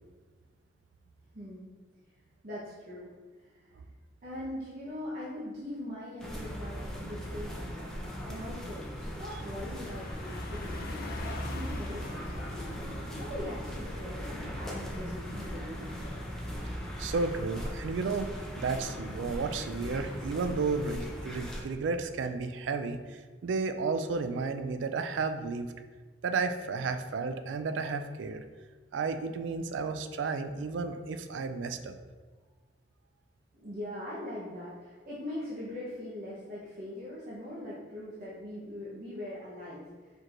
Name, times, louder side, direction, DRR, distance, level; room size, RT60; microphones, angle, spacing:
voice 1, 1.3-1.7 2.4-3.1 3.6-3.7 4.2-15.9 33.6-39.9, left 1 dB, 50° right, -8 dB, 1.0 m, -41 dB
sound 1, 6.2-21.6, equal, 5° left, 0.7 m, -39 dB
Car passing by, 6.5-6.7 7.1-18.1, left 1 dB, 55° left, 0.5 m, -44 dB
voice 2, 17.0-25.7 26.2-28.4 28.9-32.0, right 4 dB, 80° right, 9 dB, 0.3 m, -32 dB
4.6 x 4.4 x 2.5 m, 1.4 s
head